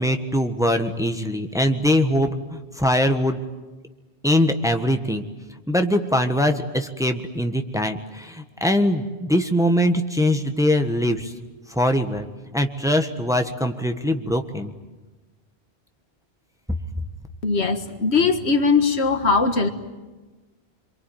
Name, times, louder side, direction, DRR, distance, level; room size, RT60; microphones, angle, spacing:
voice 1, 0.0-3.4 4.2-5.3 5.7-11.3 11.7-12.3 12.5-14.7, left 1 dB, 5° right, 6 dB, 1.4 m, -22 dB
voice 2, 17.4-19.7, left 4 dB, 90° left, 7 dB, 2.0 m, -20 dB
27.0 x 23.0 x 9.3 m, 1.2 s
omnidirectional pair, 1.1 m